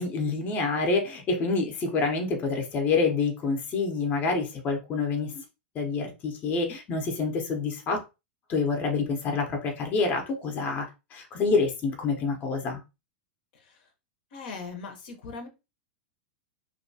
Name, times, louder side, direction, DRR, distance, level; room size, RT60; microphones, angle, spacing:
voice 1, 0.0-5.4 5.7-8.0 8.5-12.8, left 4 dB, 30° left, 0.7 m, -27 dB
voice 2, 13.5-13.8 14.3-15.5, left 4 dB, 65° left, 0.7 m, -40 dB
2.6 x 2.2 x 2.6 m
hypercardioid pair, 115°, 6 cm